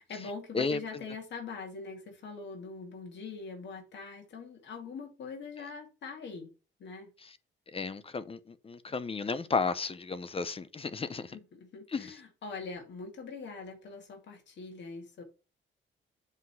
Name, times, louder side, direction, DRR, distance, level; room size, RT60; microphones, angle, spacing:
voice 1, 0.0-6.5 6.8-7.1 11.3-15.2, left 4 dB, 65° left, 2.6 m, -43 dB
voice 2, 7.7-11.4 11.9-12.2, left 4 dB, 30° left, 0.7 m, -33 dB
8.2 x 3.8 x 6.1 m
cardioid pair, 90°, 20 cm